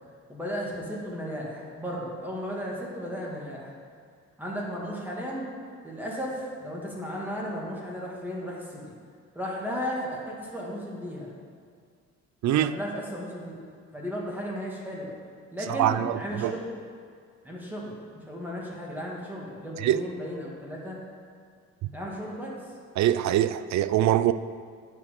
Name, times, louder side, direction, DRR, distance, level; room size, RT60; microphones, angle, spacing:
voice 1, 0.3-3.7 4.4-5.5 5.8-8.8 9.3-11.3 12.6-13.5 13.9-15.1 15.5-16.8 17.4-21.0 21.9-22.5, equal, 5° right, 2.1 m, -35 dB
voice 2, 15.7-16.6 19.8-20.0 21.8-21.9 23.0-24.3, right 12 dB, 65° right, 0.4 m, -24 dB
9.4 x 5.4 x 5.3 m
cardioid pair, 90°, 30 cm